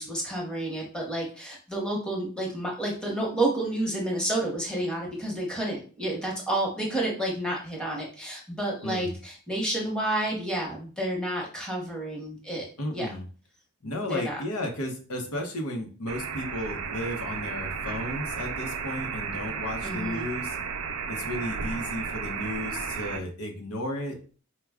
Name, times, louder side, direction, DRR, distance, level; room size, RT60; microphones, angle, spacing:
voice 1, 0.0-12.7 12.9-13.1 14.1-14.4 19.8-20.3, right 1 dB, 5° left, -2 dB, 1.0 m, -30 dB
voice 2, 8.8-9.1 12.8-13.2 13.8-20.6 21.1-24.2, left 1 dB, 85° left, 2 dB, 0.9 m, -34 dB
sound 1, 16.1-23.2, right 5 dB, 80° right, 0.5 m, -33 dB
4.6 x 2.2 x 3.5 m, 0.39 s
head